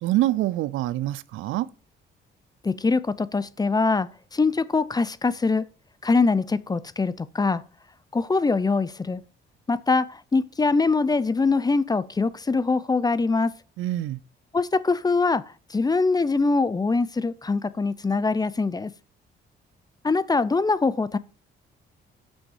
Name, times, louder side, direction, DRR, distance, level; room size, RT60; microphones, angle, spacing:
voice 1, 0.0-1.7 13.8-14.2, right 15 dB, 85° right, 0.5 m, -25 dB
voice 2, 2.6-5.7 6.0-7.6 8.1-9.2 9.7-13.5 14.5-15.4 15.7-18.9 20.0-21.2, left 4 dB, 20° left, 0.6 m, -23 dB
6.4 x 6.0 x 7.2 m
cardioid pair, 90°, 20 cm